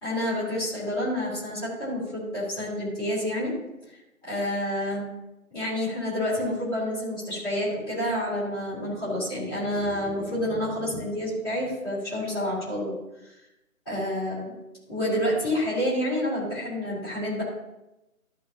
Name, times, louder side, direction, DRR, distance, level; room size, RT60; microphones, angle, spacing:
voice 1, 0.0-3.5 4.3-5.1 5.5-12.9 13.8-14.4 14.9-17.4, left 1 dB, 15° left, -9 dB, 3.2 m, -28 dB
14.0 x 7.0 x 2.8 m, 0.95 s
figure-of-eight pair, 155°, 43 cm